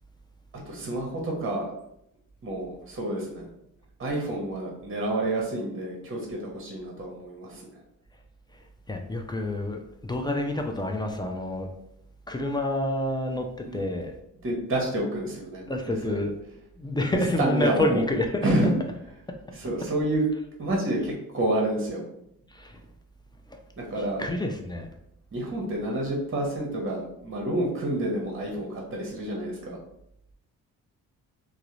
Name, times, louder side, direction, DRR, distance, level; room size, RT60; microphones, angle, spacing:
voice 1, 0.7-1.7 2.4-3.5 4.0-7.8 13.7-13.8 14.4-16.2 17.1-18.0 18.4-18.7 19.5-20.2 20.6-22.0 23.8-24.2 25.3-29.8, right 1 dB, 35° right, -1 dB, 0.8 m, -29 dB
voice 2, 8.9-11.7 12.3-14.2 15.7-16.3 16.8-18.4 22.5-22.8 23.5-23.6 24.2-24.9, left 2 dB, 15° left, 3 dB, 0.4 m, -28 dB
2.4 x 2.0 x 3.0 m, 0.78 s
supercardioid pair, 55°, 36 cm